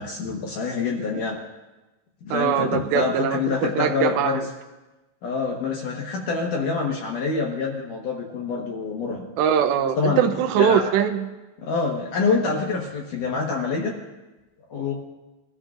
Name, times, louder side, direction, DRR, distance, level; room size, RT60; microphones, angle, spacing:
voice 1, 0.0-1.4 2.2-4.4 5.2-9.3 10.0-10.3 10.6-10.9 11.6-14.0 14.7-14.9, left 4 dB, 65° left, -1 dB, 2.2 m, -26 dB
voice 2, 2.3-4.4 9.4-11.3, right 8 dB, 90° right, 7 dB, 2.9 m, -22 dB
22.5 x 14.0 x 2.5 m, 1.1 s
omnidirectional pair, 5.1 m